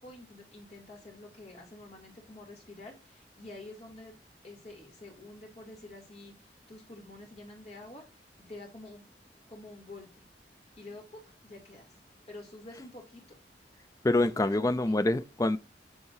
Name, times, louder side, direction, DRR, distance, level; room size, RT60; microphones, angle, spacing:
voice 1, 0.0-4.1 4.4-8.0 8.5-9.0 9.5-10.2 10.8-11.9 12.3-13.4 14.3-14.9, left 2 dB, 40° left, 2.9 m, -48 dB
voice 2, 14.0-15.6, left 2 dB, 20° left, 0.4 m, -26 dB
8.0 x 3.9 x 4.8 m
head